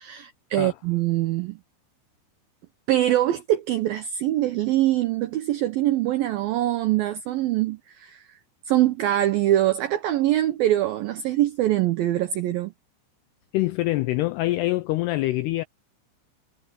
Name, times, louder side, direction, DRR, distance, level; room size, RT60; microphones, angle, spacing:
voice 1, 0.0-1.6 2.9-8.2 8.7-12.7, right 14 dB, 85° right, 2.1 m, -23 dB
voice 2, 13.5-15.6, left 18 dB, 85° left, 2.3 m, -25 dB
omnidirectional pair, 5.3 m